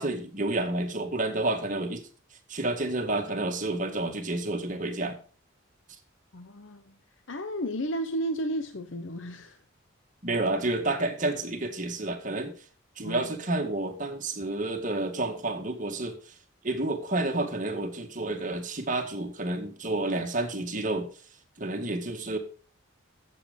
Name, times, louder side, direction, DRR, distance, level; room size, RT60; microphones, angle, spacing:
voice 1, 0.0-2.1 2.5-5.2 10.2-12.5 13.0-16.2 16.6-21.1 21.6-22.4, right 2 dB, 40° right, 2.1 m, -30 dB
voice 2, 6.3-6.9 7.3-9.6 13.0-13.3, right 1 dB, 65° left, 0.9 m, -33 dB
13.5 x 8.1 x 5.3 m
head